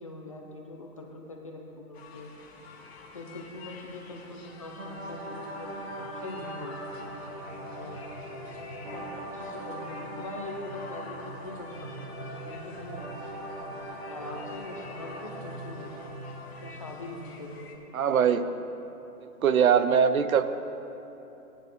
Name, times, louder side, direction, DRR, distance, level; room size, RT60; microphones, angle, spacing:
voice 1, 0.0-2.3 3.1-5.7 6.1-7.1 7.7-8.0 8.9-11.9 12.2-13.1 14.1-15.9 16.6-18.0, left 2 dB, 25° left, 0 dB, 0.5 m, -42 dB
sound 1, 1.9-17.8, left 3 dB, 45° left, 1.4 m, -49 dB
sound 2, 4.7-16.7, right 1 dB, 35° right, 1.5 m, -40 dB
voice 2, 17.9-18.5 19.4-20.4, right 7 dB, 65° right, 11 dB, 0.7 m, -21 dB
16.0 x 9.7 x 3.2 m, 3.0 s
hypercardioid pair, 150°, 45 cm